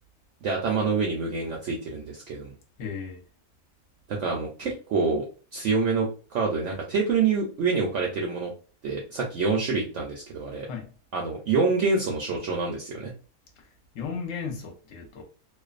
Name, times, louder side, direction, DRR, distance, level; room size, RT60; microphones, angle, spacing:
voice 1, 0.4-2.5 4.1-5.2 5.5-8.5 8.8-10.7 11.1-13.1, right 4 dB, 65° right, 0.7 m, -26 dB
voice 2, 2.8-3.2 10.6-10.9 13.9-15.2, left 6 dB, 65° left, 1.0 m, -35 dB
2.5 x 2.2 x 2.4 m
omnidirectional pair, 1.6 m